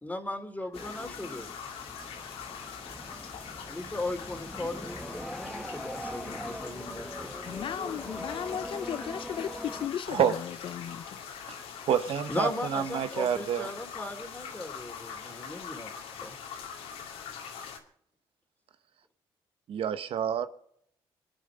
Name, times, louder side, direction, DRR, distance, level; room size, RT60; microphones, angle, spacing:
voice 1, 0.0-1.5 3.7-7.3 12.3-15.9 16.2-16.3, left 2 dB, 15° left, 3.1 m, -37 dB
sound 1, 0.7-17.8, left 7 dB, 85° left, 2.5 m, -43 dB
sound 2, 0.7-9.9, equal, ahead, 1.3 m, -42 dB
voice 2, 7.4-11.2, left 9 dB, 60° left, 0.6 m, -36 dB
voice 3, 11.9-13.7 19.7-20.5, right 9 dB, 70° right, 1.0 m, -28 dB
25.5 x 9.4 x 5.0 m
supercardioid pair, 60°, 10 cm